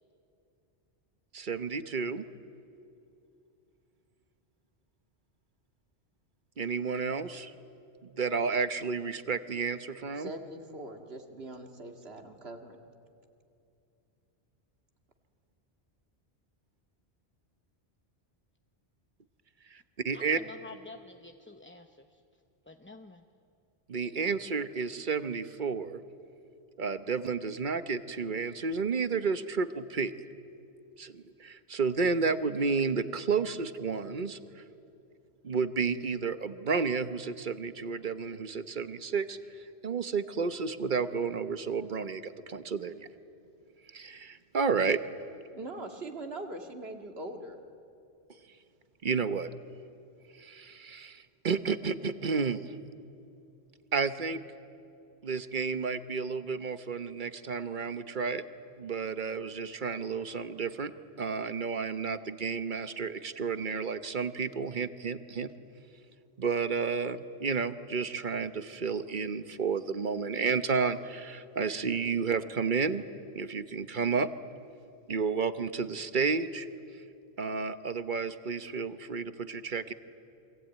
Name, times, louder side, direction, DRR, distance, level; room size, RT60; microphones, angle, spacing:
voice 1, 1.3-2.2 6.6-7.5 8.0-10.3 19.7-20.4 23.9-26.0 26.8-30.1 31.0-34.6 35.4-39.4 39.8-43.1 43.9-45.0 49.0-49.5 50.4-52.7 53.9-54.4 55.2-58.4 58.8-60.9 61.2-65.5 66.4-73.0 73.3-74.3 75.1-76.7 77.4-79.9, right 5 dB, 50° right, 11 dB, 1.1 m, -31 dB
voice 2, 10.1-12.8 45.5-47.6, right 2 dB, 65° right, 4 dB, 2.3 m, -42 dB
voice 3, 20.1-22.2 22.6-23.2, left 3 dB, 15° left, 5 dB, 0.6 m, -49 dB
27.5 x 23.5 x 9.2 m, 2.6 s
omnidirectional pair, 1.1 m